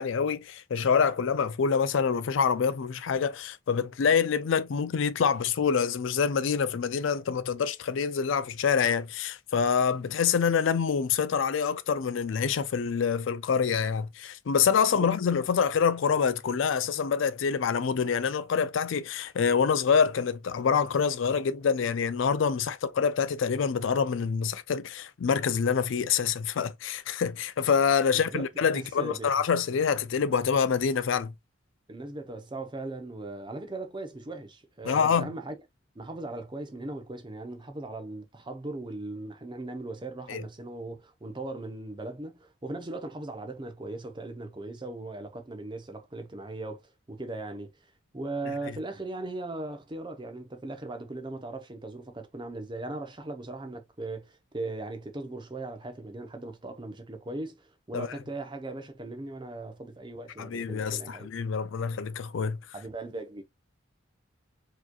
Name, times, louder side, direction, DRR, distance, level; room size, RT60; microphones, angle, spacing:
voice 1, 0.0-31.3 34.8-35.3 40.3-40.4 57.9-58.1 60.4-62.6, left 6 dB, 65° left, 0.4 m, -26 dB
voice 2, 15.0-15.5 28.1-29.3 31.9-35.6 35.9-47.7 48.1-61.3 62.7-63.4, right 2 dB, 25° right, 0.7 m, -38 dB
4.6 x 3.0 x 2.3 m
head